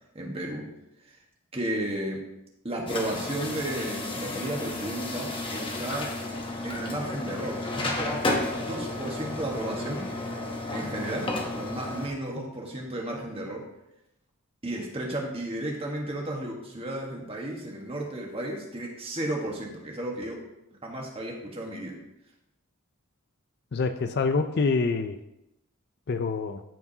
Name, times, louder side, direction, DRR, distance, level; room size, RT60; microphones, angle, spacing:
voice 1, 0.1-0.7 1.5-2.2 2.6-6.1 6.6-10.1 10.7-13.7 14.6-20.4 20.8-22.0, right 1 dB, 25° right, -1 dB, 1.4 m, -33 dB
sound 1, 2.9-12.1, left 2 dB, 25° left, 0.9 m, -32 dB
voice 2, 23.7-25.2 26.1-26.6, left 4 dB, 45° left, 8 dB, 0.4 m, -26 dB
13.5 x 4.7 x 2.8 m, 0.86 s
head